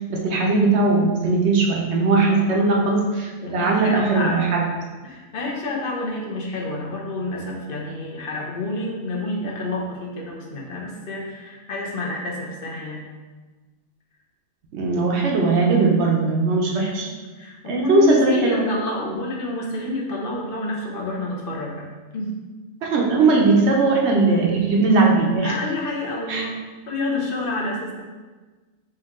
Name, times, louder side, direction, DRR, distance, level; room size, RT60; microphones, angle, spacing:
voice 1, 0.1-4.6 14.7-17.1 17.7-18.6 22.8-25.5 26.3-26.4, right 3 dB, 60° right, 0 dB, 0.9 m, -19 dB
voice 2, 2.2-2.9 3.4-4.4 5.0-13.0 16.6-21.9 22.1-22.3 25.4-26.6 26.9-28.0, left 2 dB, 50° left, -2 dB, 0.9 m, -29 dB
4.5 x 3.0 x 3.6 m, 1.3 s
omnidirectional pair, 1.4 m